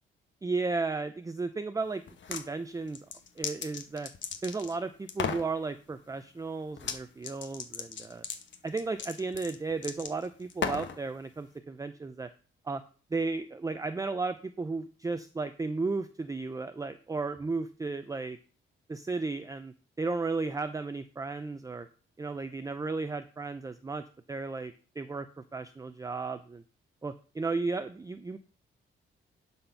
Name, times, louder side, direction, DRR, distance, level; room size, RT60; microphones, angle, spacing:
voice 1, 0.4-2.0 2.3-3.1 3.4-4.1 4.4-8.3 8.6-12.3 12.6-12.8 13.1-18.4 18.9-21.9 22.2-25.3 25.5-26.6 27.0-28.4, right 3 dB, 15° right, 10 dB, 0.5 m, -34 dB
sound 1, 2.1-2.5 2.9-4.8 5.1-5.5 6.8-7.0 7.2-11.0, left 7 dB, 60° left, 1.1 m, -36 dB
11.0 x 4.3 x 5.8 m, 0.39 s
cardioid pair, 110°, 21 cm